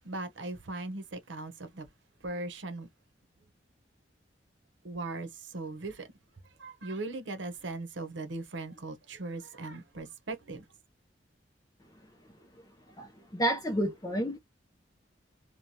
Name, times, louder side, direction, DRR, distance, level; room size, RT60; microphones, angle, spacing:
voice 1, 0.0-1.9 2.2-2.9 4.8-6.1 6.6-10.7, right 2 dB, 90° right, 0.8 m, -39 dB
voice 2, 12.9-14.4, right 1 dB, 20° left, 0.5 m, -30 dB
3.0 x 2.3 x 2.7 m
head